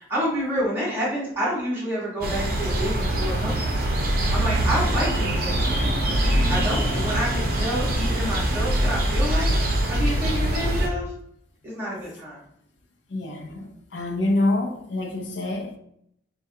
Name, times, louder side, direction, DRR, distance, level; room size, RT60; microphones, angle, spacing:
voice 1, 0.0-3.7 4.3-9.5 9.9-11.1 11.6-12.4, equal, 15° right, 1.2 m, -29 dB
sound 1, 2.2-10.9, right 1 dB, 55° right, 0.7 m, -23 dB
sound 2, 4.7-9.3, equal, 20° left, 0.9 m, -35 dB
voice 2, 13.1-15.8, left 2 dB, 90° left, 0.5 m, -26 dB
4.4 x 2.2 x 2.7 m
head